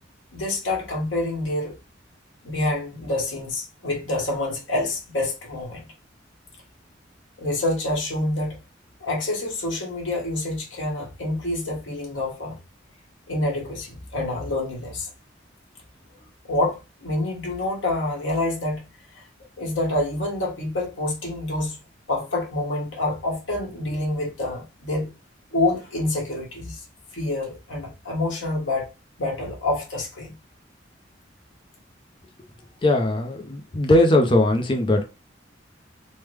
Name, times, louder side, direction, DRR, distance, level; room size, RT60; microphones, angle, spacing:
voice 1, 0.3-1.7 2.4-5.9 7.4-8.6 9.0-12.5 13.3-15.1 16.4-18.8 19.1-19.2 19.6-21.8 22.1-25.1 25.5-26.8 27.1-28.9 29.2-30.3, left 2 dB, 75° left, 1.3 m, -27 dB
voice 2, 32.8-35.0, left 1 dB, 25° left, 0.5 m, -19 dB
3.3 x 2.1 x 3.3 m
head